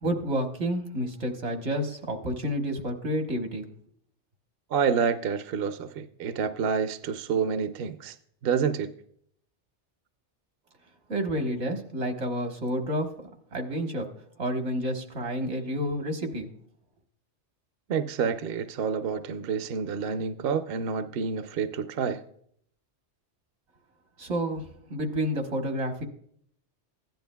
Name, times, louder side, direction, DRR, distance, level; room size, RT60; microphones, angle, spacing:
voice 1, 0.0-3.7 11.1-13.1 13.5-14.1 14.4-16.5 24.2-26.0, equal, 80° right, 4 dB, 1.6 m, -30 dB
voice 2, 4.7-8.2 8.4-8.9 17.9-22.2, right 6 dB, 60° right, 10 dB, 0.7 m, -28 dB
15.5 x 10.5 x 2.3 m, 0.65 s
omnidirectional pair, 1.2 m